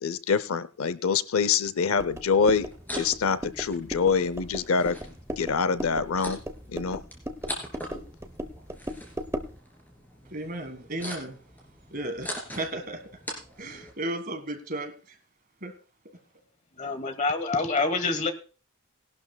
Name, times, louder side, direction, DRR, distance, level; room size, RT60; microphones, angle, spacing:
voice 1, 0.0-5.0 5.4-6.4 6.7-7.0, left 5 dB, 80° left, 15 dB, 0.6 m, -25 dB
sound 1, 2.0-9.6, equal, 15° right, 0.8 m, -37 dB
sound 2, 2.5-13.9, equal, 10° left, 3.0 m, -43 dB
voice 2, 10.3-11.4 11.9-13.0 13.6-15.2 15.6-15.7, right 1 dB, 40° right, 7 dB, 1.8 m, -34 dB
voice 3, 16.8-18.3, left 3 dB, 35° left, 10 dB, 1.2 m, -26 dB
19.0 x 11.5 x 2.3 m, 0.37 s
head